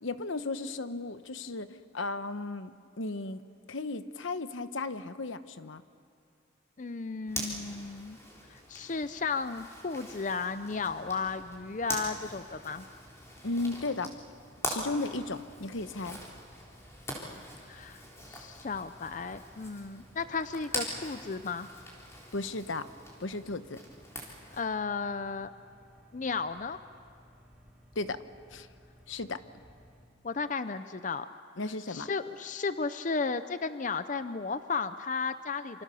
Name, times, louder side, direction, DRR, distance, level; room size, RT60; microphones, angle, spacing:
voice 1, 0.0-3.4 3.7-5.8 13.4-14.1 14.6-16.2 22.3-22.9 23.2-23.8 27.9-28.2 28.5-28.7 29.1-29.4 31.6-32.1, left 3 dB, 75° left, 11 dB, 1.0 m, -35 dB
voice 2, 6.8-8.2 8.5-12.8 17.7-18.0 18.3-21.7 24.5-25.5 26.1-26.8 30.2-31.3 31.9-35.8, left 4 dB, 40° left, 11 dB, 0.5 m, -34 dB
Zipper (clothing), 7.3-24.6, equal, 15° left, 3.8 m, -43 dB
sound 1, 10.8-30.0, equal, 5° right, 3.6 m, -59 dB
27.5 x 26.0 x 6.9 m, 2.4 s
head